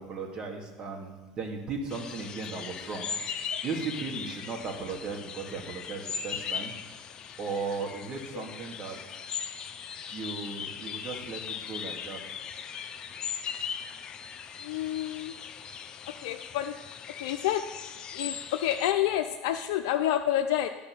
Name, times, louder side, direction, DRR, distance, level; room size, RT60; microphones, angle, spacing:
voice 1, 0.0-3.2 3.6-6.7 7.4-9.0 10.1-12.2, right 4 dB, 40° right, 2 dB, 2.3 m, -36 dB
sound 1, 1.9-18.9, left 7 dB, 40° left, 0.7 m, -39 dB
voice 2, 14.6-15.3 16.2-16.7 17.2-17.6 18.1-20.7, left 12 dB, 75° left, 5 dB, 0.5 m, -28 dB
10.5 x 5.3 x 7.5 m, 1.4 s
supercardioid pair, 95°, 2 cm